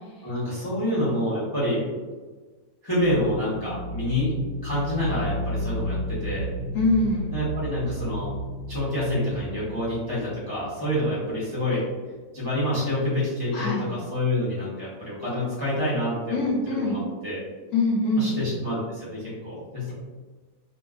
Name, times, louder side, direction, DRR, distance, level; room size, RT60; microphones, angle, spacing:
voice 1, 0.2-1.8 2.8-4.3 4.6-6.5 7.3-8.3 8.7-11.8 12.3-17.4 18.2-19.9, left 1 dB, 25° left, -9 dB, 0.5 m, -27 dB
sound 1, 3.0-11.6, equal, 80° right, 1.1 m, -33 dB
voice 2, 6.7-7.3 13.5-13.8 16.3-17.0 17.7-18.4, left 2 dB, 80° left, -4 dB, 1.1 m, -23 dB
2.4 x 2.4 x 2.3 m, 1.3 s
omnidirectional pair, 1.6 m